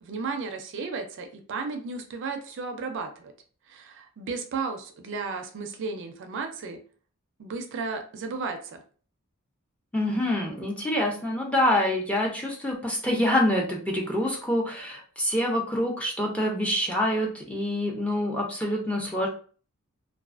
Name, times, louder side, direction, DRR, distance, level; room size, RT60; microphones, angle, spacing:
voice 1, 0.0-3.3 3.7-6.8 7.4-8.8 10.4-10.7, right 4 dB, 55° right, 6 dB, 0.4 m, -34 dB
voice 2, 9.9-19.3, left 1 dB, 5° left, -1 dB, 0.5 m, -26 dB
2.4 x 2.3 x 2.3 m, 0.41 s
head